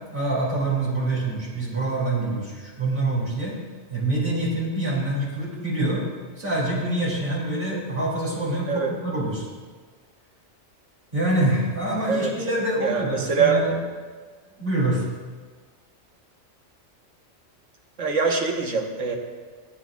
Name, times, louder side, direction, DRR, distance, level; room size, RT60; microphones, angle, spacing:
voice 1, 0.1-3.5 3.9-6.0 6.4-9.4 11.1-13.7 14.6-15.1, right 2 dB, 45° right, -6 dB, 3.1 m, -25 dB
voice 2, 12.8-13.6 18.0-19.2, right 5 dB, 80° right, 2 dB, 1.6 m, -23 dB
20.0 x 9.2 x 2.4 m, 1.5 s
omnidirectional pair, 1.3 m